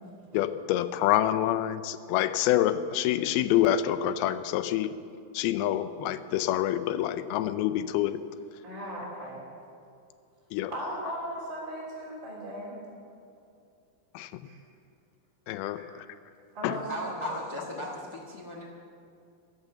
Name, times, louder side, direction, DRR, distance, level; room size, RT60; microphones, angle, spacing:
voice 1, 0.3-4.9 5.3-8.2 10.5-10.7 14.1-14.4 15.5-16.1 16.6-16.8, left 12 dB, 90° left, 12 dB, 2.6 m, -27 dB
voice 2, 8.6-9.4 10.7-12.8 14.4-14.6 15.7-16.0 16.5-17.3, right 1 dB, 30° right, -6 dB, 3.8 m, -38 dB
voice 3, 16.7-18.7, equal, 65° left, -2 dB, 0.9 m, -37 dB
15.0 x 11.5 x 6.9 m, 2.5 s
omnidirectional pair, 4.3 m